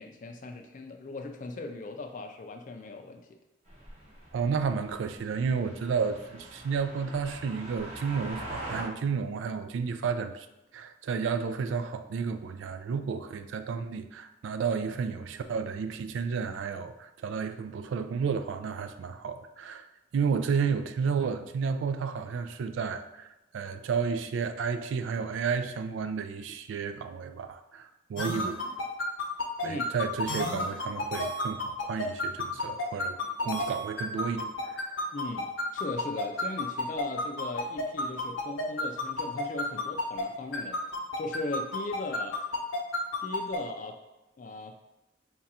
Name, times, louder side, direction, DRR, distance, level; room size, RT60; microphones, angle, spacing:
voice 1, 0.0-3.4 29.6-29.9 35.1-40.8 41.2-42.4 43.2-44.0 44.4-44.8, left 2 dB, 40° left, 4 dB, 0.3 m, -38 dB
sound 1, 3.7-8.8, right 1 dB, 35° right, 1.0 m, -43 dB
voice 2, 4.3-10.5 10.7-19.9 20.1-23.3 23.5-28.6 29.6-35.1, right 5 dB, 80° right, 9 dB, 0.3 m, -32 dB
sound 2, 28.2-40.2 40.5-43.6, left 2 dB, 85° left, 0.7 m, -31 dB
3.6 x 2.3 x 4.1 m, 0.99 s
head